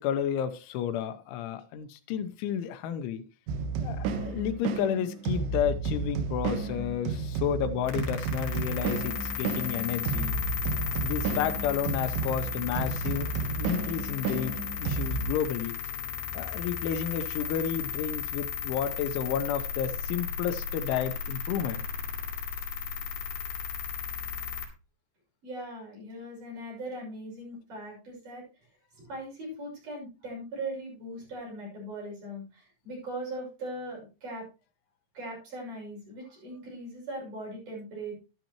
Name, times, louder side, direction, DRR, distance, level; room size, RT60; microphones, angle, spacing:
voice 1, 0.0-3.2 3.8-10.4 11.0-15.8 16.3-21.8, left 9 dB, 85° left, 3.3 m, -31 dB
sound 1, 3.5-15.3, right 4 dB, 85° right, 2.1 m, -32 dB
sound 2, 7.9-24.7, left 7 dB, 65° left, 4.1 m, -35 dB
voice 2, 25.4-28.4 29.0-34.5 35.1-38.1, right 1 dB, 45° right, 7.6 m, -39 dB
12.0 x 11.5 x 3.0 m
omnidirectional pair, 5.4 m